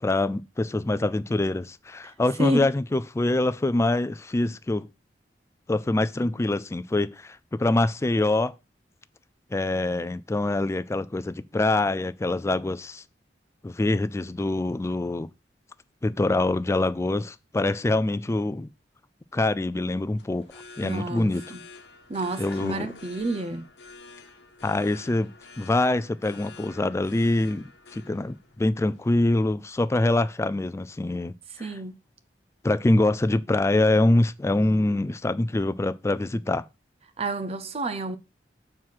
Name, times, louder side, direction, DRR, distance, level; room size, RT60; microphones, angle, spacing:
voice 1, 0.0-4.9 5.7-8.5 9.5-13.0 13.6-15.3 16.0-18.7 19.3-20.5 20.8-21.4 22.4-22.9 24.6-31.8 32.6-36.6, left 2 dB, 15° left, 0.3 m, -25 dB
voice 2, 2.4-2.7 20.8-21.6 22.1-23.7 31.6-31.9 37.2-38.2, right 1 dB, 35° right, 0.6 m, -29 dB
sound 1, 19.8-29.4, left 4 dB, 70° left, 1.1 m, -48 dB
6.1 x 4.7 x 5.6 m
head